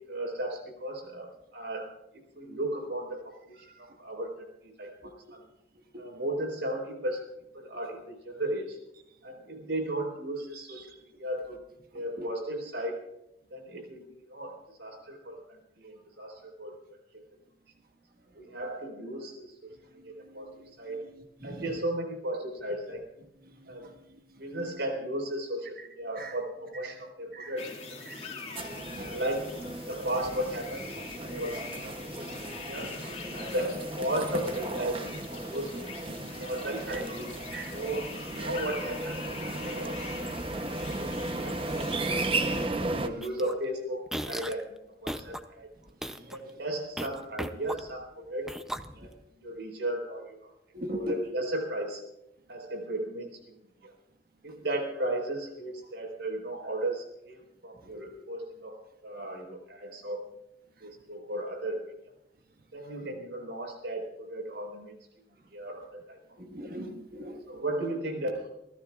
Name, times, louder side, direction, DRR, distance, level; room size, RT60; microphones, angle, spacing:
voice 1, 0.0-1.9 2.3-5.4 6.0-7.3 7.5-8.8 9.2-10.9 11.2-11.6 11.9-13.0 13.5-16.8 17.1-17.2 18.3-19.7 20.0-20.5 20.8-21.0 21.4-23.1 23.7-23.9 24.4-28.2 29.0-33.0 33.3-35.9 36.4-37.1 37.7-40.0 40.5-41.6 42.7-45.7 46.3-48.5 48.9-49.1 49.4-50.5 50.9-52.0 52.5-53.6 54.4-60.3 60.8-61.9 62.7-64.9 65.5-66.2 66.7-66.8 67.5-68.5, right 1 dB, 85° right, 3 dB, 4.7 m, -35 dB
voice 2, 21.0-21.6 26.2-26.3 27.3-27.5 28.1-28.3 28.9-29.2 32.8-32.9 33.3-33.5 36.9-37.0 37.5-37.8 46.2-46.3 50.7-51.2 66.4-67.4, right 1 dB, 55° right, 4 dB, 1.6 m, -39 dB
sound 1, 27.6-42.7, left 4 dB, 35° left, 2.2 m, -43 dB
sound 2, 28.5-43.1, right 2 dB, 30° right, 0.9 m, -35 dB
sound 3, 43.2-43.5 44.1-44.6 45.1-45.4 45.9-46.4 47.0-48.1 48.5-49.2, equal, 5° right, 0.5 m, -37 dB
29.0 x 14.5 x 2.5 m, 0.84 s
head